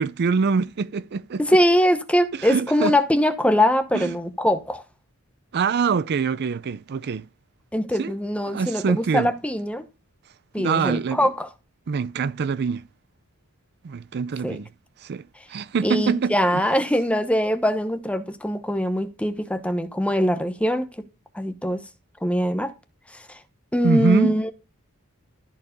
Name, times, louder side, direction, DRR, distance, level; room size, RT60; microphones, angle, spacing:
voice 1, 0.0-1.4 2.3-2.9 3.9-4.1 5.5-7.3 7.9-8.1 8.5-9.3 10.6-11.3 11.9-12.8 13.8-14.7 15.0-16.7 23.8-24.3, right 5 dB, 50° right, 0.4 m, -24 dB
voice 2, 1.4-4.8 7.7-9.8 10.5-11.5 14.4-14.6 15.8-20.9 21.3-21.8 22.2-22.7 23.1-23.4 23.7-24.5, equal, 5° left, 1.0 m, -22 dB
13.5 x 4.7 x 5.3 m
head